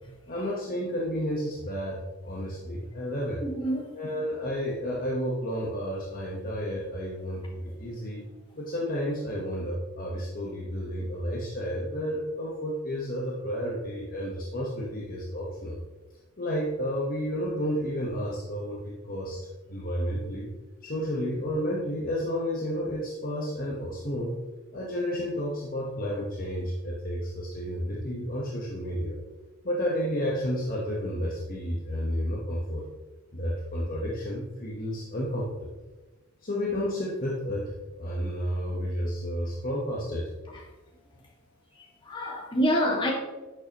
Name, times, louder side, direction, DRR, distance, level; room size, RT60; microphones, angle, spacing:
voice 1, 0.3-2.0 2.2-3.4 3.9-8.2 8.6-15.8 16.4-19.4 19.7-20.5 20.8-24.4 24.7-29.2 29.6-32.8 33.3-35.5 36.4-37.7 38.0-40.3, equal, 40° left, 1.2 m, -31 dB
voice 2, 3.4-3.9 42.0-43.1, equal, 20° left, 1.9 m, -26 dB
11.0 x 6.9 x 3.0 m
head